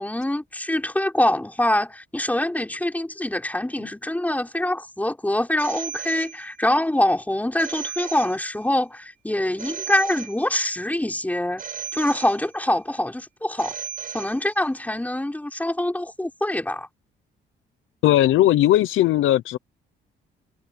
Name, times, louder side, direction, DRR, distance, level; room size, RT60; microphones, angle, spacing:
voice 1, 0.0-11.6 11.9-13.8 14.1-16.9, left 1 dB, 10° left, 5.0 m, -24 dB
Telephone, 5.6-6.8 7.6-8.8 9.6-10.8 11.6-12.8 13.6-14.8, right 6 dB, 45° right, 6.0 m, -36 dB
voice 2, 18.0-19.6, left 14 dB, 85° left, 0.9 m, -18 dB
cardioid pair, 90°, 20 cm